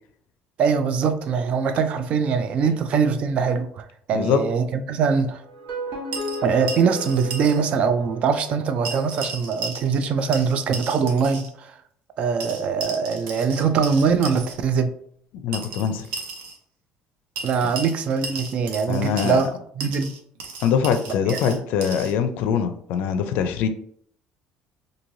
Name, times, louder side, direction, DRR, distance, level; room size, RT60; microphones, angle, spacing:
voice 1, 0.6-5.4 6.4-11.7 12.2-14.9 17.4-19.5 19.8-20.1 21.3-21.6, right 5 dB, 45° right, 0.3 m, -22 dB
sound 1, 5.5-8.6, right 1 dB, 70° right, 1.3 m, -34 dB
sound 2, 6.1-7.6 7.8-7.9 8.8-10.1 10.3-11.5 12.4-14.5 15.5-16.6 17.4-19.5 19.8-22.1, right 4 dB, 90° right, 0.6 m, -35 dB
voice 2, 15.4-16.1 17.6-17.7 18.9-19.4 20.6-23.7, left 7 dB, 70° left, 0.4 m, -23 dB
3.0 x 2.6 x 2.6 m
cardioid pair, 145°, 3 cm